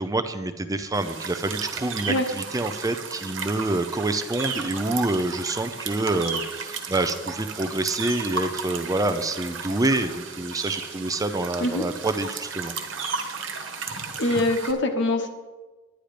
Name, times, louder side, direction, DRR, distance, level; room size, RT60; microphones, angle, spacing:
voice 1, 0.0-12.7, right 2 dB, 15° right, 9 dB, 0.5 m, -27 dB
sound 1, 0.9-14.7, right 5 dB, 65° right, 1.3 m, -34 dB
voice 2, 14.2-15.3, left 2 dB, 60° left, 5 dB, 1.3 m, -23 dB
10.5 x 10.0 x 5.0 m, 1.2 s
head